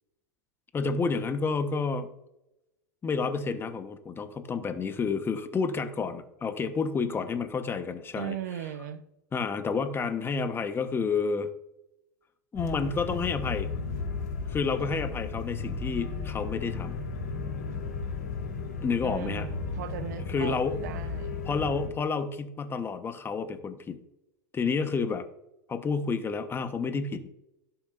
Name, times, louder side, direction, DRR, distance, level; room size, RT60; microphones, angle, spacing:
voice 1, 0.7-2.1 3.0-8.4 9.3-11.5 12.5-13.7 14.4-17.0 18.8-19.5 20.3-20.8 21.4-24.0 24.5-25.3 25.7-27.3, left 5 dB, 25° left, 9 dB, 1.2 m, -30 dB
voice 2, 8.1-9.0 19.0-21.5, right 10 dB, 70° right, 12 dB, 0.9 m, -38 dB
sound 1, 12.5-21.9, left 4 dB, 75° left, 3.3 m, -34 dB
17.0 x 7.2 x 2.6 m, 0.89 s
hypercardioid pair, 90°, 9 cm